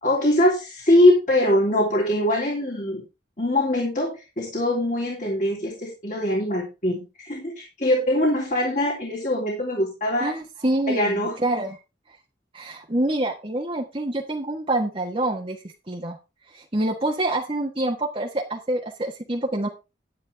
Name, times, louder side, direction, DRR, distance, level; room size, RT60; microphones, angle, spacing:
voice 1, 0.0-3.0 3.4-10.3 10.9-11.3, left 1 dB, 45° left, -1 dB, 3.1 m, -22 dB
voice 2, 10.2-11.8 12.5-16.2 16.5-19.7, right 1 dB, 30° right, 0 dB, 1.4 m, -26 dB
10.5 x 10.5 x 3.4 m, 0.27 s
head